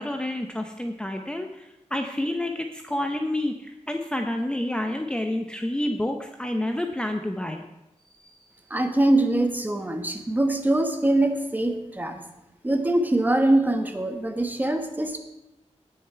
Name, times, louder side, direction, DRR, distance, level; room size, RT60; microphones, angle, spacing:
voice 1, 0.0-7.6 8.1-8.6, left 1 dB, 10° left, 4 dB, 0.7 m, -29 dB
voice 2, 8.7-12.2 12.6-15.2, right 1 dB, 15° right, 6 dB, 1.2 m, -23 dB
17.5 x 6.8 x 4.6 m, 0.94 s
wide cardioid pair, 135°, 12 cm